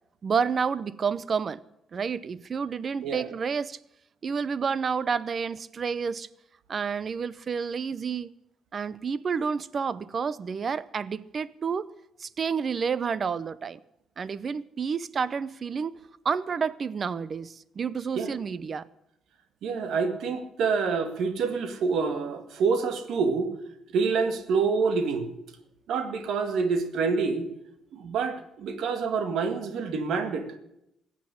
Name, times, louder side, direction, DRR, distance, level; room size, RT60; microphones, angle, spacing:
voice 1, 0.2-1.6 1.9-3.8 4.2-6.3 6.7-8.3 8.7-11.9 12.2-13.8 14.2-15.9 16.2-18.8, right 6 dB, 45° right, 0.7 m, -29 dB
voice 2, 19.6-23.5 23.9-25.3 25.9-27.5 27.9-30.5, right 5 dB, 75° right, 2.0 m, -27 dB
15.5 x 8.5 x 9.9 m
cardioid pair, 90°, 0 cm